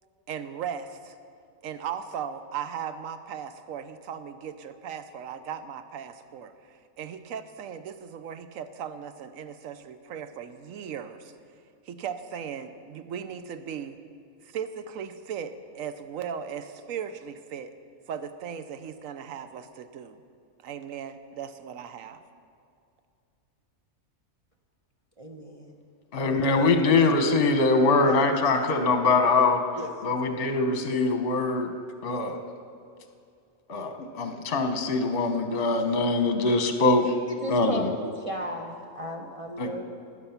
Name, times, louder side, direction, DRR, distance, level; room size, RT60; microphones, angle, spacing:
voice 1, 0.3-1.2 1.6-11.3 11.9-14.0 14.4-17.7 18.1-20.2 20.6-22.2, right 8 dB, 70° right, 11 dB, 1.1 m, -37 dB
voice 2, 25.2-25.7 26.2-27.2 28.1-28.2 29.8-29.9 37.4-37.9 38.1-39.8, equal, 30° right, 1 dB, 0.8 m, -36 dB
voice 3, 26.1-29.6 30.0-31.7 32.0-32.4 33.7-37.2 37.5-37.9 39.6-39.7, left 3 dB, 45° left, 6 dB, 1.1 m, -23 dB
19.5 x 8.1 x 5.8 m, 2.4 s
omnidirectional pair, 1.5 m